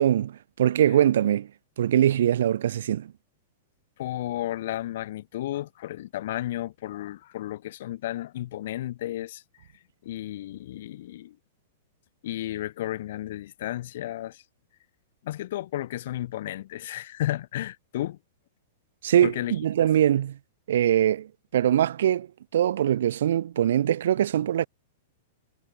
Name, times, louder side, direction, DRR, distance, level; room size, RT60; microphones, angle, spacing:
voice 1, 0.0-1.5 1.8-3.1 19.0-20.4 20.7-21.3 21.5-22.3 22.5-24.7, right 10 dB, 75° right, 1.2 m, -22 dB
voice 2, 4.0-9.4 10.0-11.4 12.2-14.4 15.2-18.2 19.2-19.5, left 14 dB, 60° left, 2.8 m, -33 dB
supercardioid pair, 155°, 0 cm